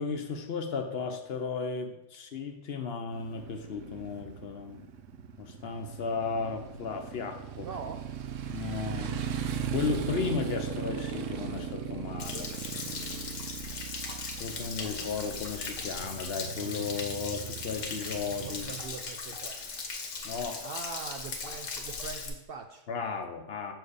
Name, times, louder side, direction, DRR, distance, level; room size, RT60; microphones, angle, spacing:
voice 1, 0.0-4.8 5.4-7.7 8.5-9.2 9.7-12.5 14.3-18.7 20.2-20.6 22.9-23.7, left 5 dB, 60° left, 6 dB, 0.8 m, -35 dB
Motorcycle, 3.1-18.9, right 7 dB, 80° right, 1.0 m, -38 dB
voice 2, 7.6-8.1 18.5-19.7 20.6-22.9, right 5 dB, 60° right, 5 dB, 0.6 m, -42 dB
Stream / Splash splatter / Trickle dribble, 12.2-22.3, left 4 dB, 80° left, 1.3 m, -38 dB
6.4 x 4.6 x 4.8 m, 0.96 s
omnidirectional pair, 1.3 m